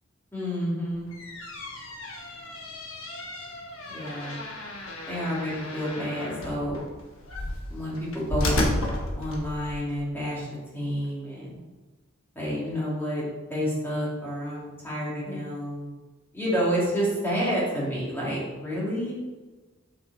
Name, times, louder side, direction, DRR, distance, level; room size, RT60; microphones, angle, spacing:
voice 1, 0.3-1.1 3.8-4.4 5.1-6.8 7.7-8.9 9.1-10.5 10.7-11.6 12.3-13.2 13.5-15.9 16.3-19.2, equal, 10° left, -7 dB, 2.4 m, -29 dB
sound 1, 0.9-9.8, left 1 dB, 80° left, 1.3 m, -33 dB
6.8 x 5.6 x 4.1 m, 1.2 s
head